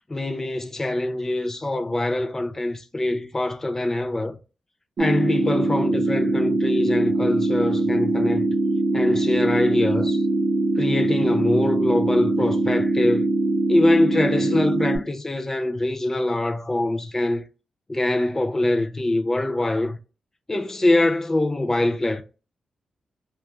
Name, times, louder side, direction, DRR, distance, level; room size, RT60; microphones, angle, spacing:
voice 1, 0.1-4.4 5.0-8.5 8.9-10.2 10.8-13.3 13.7-17.4 17.9-20.0 20.5-22.2, left 2 dB, 20° left, 0.3 m, -23 dB
sound 1, 5.0-15.0, right 2 dB, 60° right, 0.7 m, -22 dB
2.3 x 2.2 x 2.9 m
cardioid pair, 95°, 2 cm